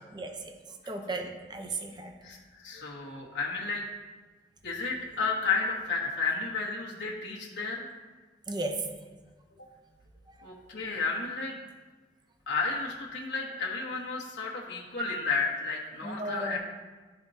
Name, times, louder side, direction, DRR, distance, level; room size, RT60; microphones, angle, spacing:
voice 1, 0.1-2.1 2.7-2.8 8.5-8.8 10.3-10.4 16.0-16.6, right 2 dB, 25° right, 4 dB, 0.6 m, -36 dB
voice 2, 2.6-3.8 4.6-7.9 10.4-11.6 12.5-16.6, left 4 dB, 85° left, -4 dB, 1.3 m, -32 dB
12.5 x 4.4 x 2.7 m, 1.3 s
head